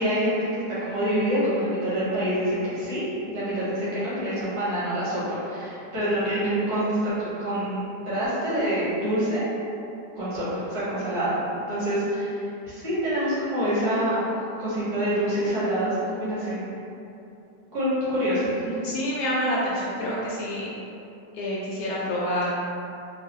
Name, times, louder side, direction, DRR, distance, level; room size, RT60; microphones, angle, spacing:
voice 1, 0.0-9.4 10.2-11.3 11.7-14.3 14.6-16.6 17.7-18.5, equal, 65° right, -11 dB, 1.9 m, -26 dB
voice 2, 18.8-20.7 21.3-22.5, equal, 70° left, -6 dB, 1.0 m, -27 dB
3.8 x 2.6 x 2.9 m, 2.7 s
omnidirectional pair, 1.9 m